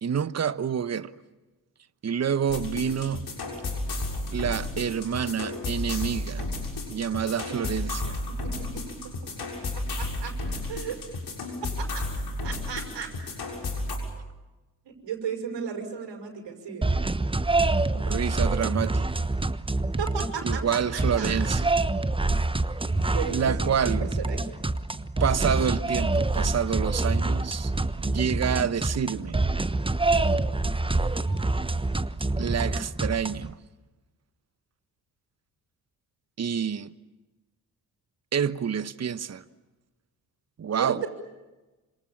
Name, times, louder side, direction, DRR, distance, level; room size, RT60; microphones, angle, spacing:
voice 1, 0.0-1.1 2.0-3.3 4.3-6.5 6.9-8.2 17.9-19.1 20.4-21.7 23.3-24.1 25.2-27.7 28.0-29.4 32.4-33.6 36.4-36.9 38.3-39.4 40.6-41.0, right 7 dB, 35° right, 1.1 m, -28 dB
sound 1, 2.5-14.0, left 2 dB, 55° left, 6.9 m, -33 dB
voice 2, 8.4-9.0 9.7-10.3 10.7-11.0 11.6-12.1 12.4-13.1 14.8-16.9 20.0-21.4 23.1-24.6 40.7-41.1, right 7 dB, 60° right, 5.9 m, -35 dB
sound 2, 16.8-33.5, right 2 dB, 10° right, 1.1 m, -26 dB
28.0 x 26.5 x 7.3 m
hypercardioid pair, 45°, 47 cm